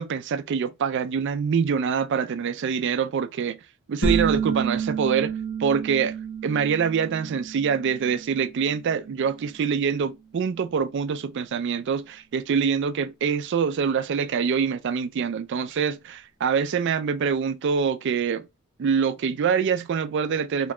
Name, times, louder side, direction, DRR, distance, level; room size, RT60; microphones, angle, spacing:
voice 1, 0.0-3.6 3.9-6.2 6.4-18.5 18.8-20.7, right 6 dB, 55° right, 0.3 m, -25 dB
sound 1, 4.0-9.4, right 6 dB, 60° left, 0.8 m, -30 dB
3.0 x 2.2 x 3.6 m
head